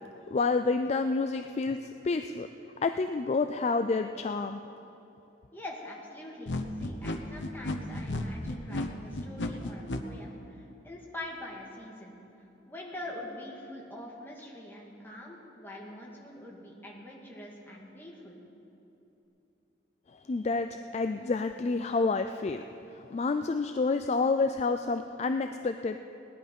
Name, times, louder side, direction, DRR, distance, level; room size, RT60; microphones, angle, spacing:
voice 1, 0.3-2.5 2.8-4.6 20.3-22.6 22.9-26.0, left 3 dB, 35° left, 8 dB, 0.3 m, -29 dB
voice 2, 5.5-12.2 12.7-18.4, left 1 dB, 10° left, -3 dB, 1.9 m, -44 dB
sound 1, 6.5-10.0, left 1 dB, 75° left, 0.9 m, -33 dB
18.0 x 11.0 x 5.3 m, 3.0 s
head